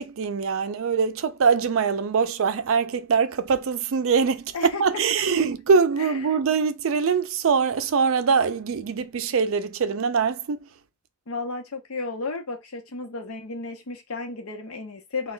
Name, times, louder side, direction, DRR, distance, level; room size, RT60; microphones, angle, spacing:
voice 1, 0.0-10.7, right 5 dB, 65° right, 0.4 m, -23 dB
voice 2, 6.0-6.4 11.3-15.3, left 3 dB, 85° left, 0.8 m, -33 dB
2.2 x 2.2 x 3.8 m
head